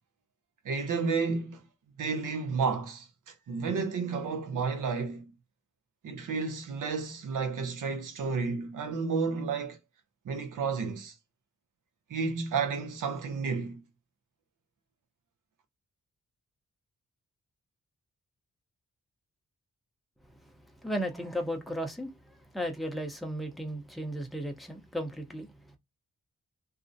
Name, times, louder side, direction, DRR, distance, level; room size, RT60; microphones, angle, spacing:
voice 1, 0.6-1.6 2.0-5.3 6.0-9.8 10.2-11.1 12.1-13.8, right 5 dB, 90° right, 0.7 m, -31 dB
voice 2, 20.4-25.8, equal, ahead, 0.6 m, -36 dB
2.4 x 2.0 x 2.5 m
wide cardioid pair, 105°, 31 cm